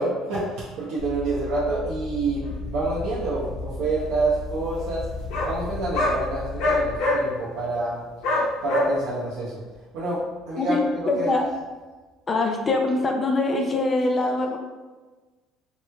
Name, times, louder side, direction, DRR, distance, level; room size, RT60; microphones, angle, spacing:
voice 1, 0.0-5.1 5.4-8.0 8.6-9.6 9.9-11.4, right 2 dB, 75° right, -8 dB, 0.7 m, -27 dB
sound 1, 1.0-7.0, left 3 dB, 10° right, 0.8 m, -35 dB
sound 2, 2.4-2.5 3.4-3.5 3.8-3.9 4.1-4.2 5.3-5.5 5.9-6.2 6.6-7.2 8.2-8.9, left 2 dB, 80° left, 0.9 m, -23 dB
voice 2, 11.1-11.4 12.3-14.6, left 2 dB, 20° left, 3 dB, 0.4 m, -23 dB
3.3 x 3.0 x 2.3 m, 1.3 s
cardioid pair, 170°, 0 cm